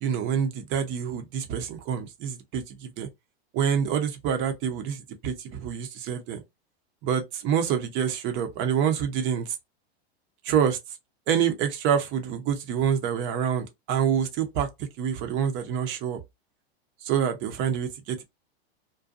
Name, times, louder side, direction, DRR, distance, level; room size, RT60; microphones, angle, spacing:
voice 1, 0.0-3.1 3.5-6.4 7.0-9.5 10.4-10.8 11.3-16.2 17.0-18.2, right 8 dB, 35° right, 0.6 m, -27 dB
2.6 x 2.2 x 2.5 m
hypercardioid pair, 115°, 32 cm